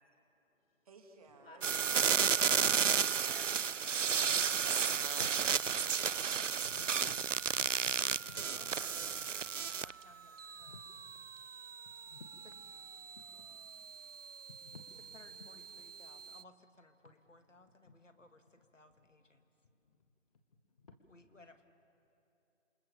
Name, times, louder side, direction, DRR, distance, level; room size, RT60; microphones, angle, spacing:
voice 1, 0.8-1.8 5.8-6.6, right 3 dB, 30° right, 3 dB, 2.6 m, -58 dB
sound 1, 1.3-2.1 3.9-4.0 4.2-4.4 5.0-5.5 5.9-6.0 6.4-9.6 10.1-10.2 10.6-11.0 11.8-12.5 12.9-13.5 14.2-15.0 15.3-15.6 16.2-19.2 19.6-20.9, left 4 dB, 30° left, 1.6 m, -57 dB
voice 2, 1.4-1.8 2.7-4.6, left 3 dB, 50° left, 0 dB, 4.3 m, -57 dB
sound 2, 1.6-10.0 10.4-16.4, right 7 dB, 75° right, 0.6 m, -34 dB
voice 3, 7.9-11.0 12.1-13.0 13.3-13.6 14.9-19.5 21.0-21.6, left 2 dB, 75° left, 7 dB, 2.2 m, -62 dB
28.0 x 26.0 x 7.2 m, 3.0 s
figure-of-eight pair, 150°, 38 cm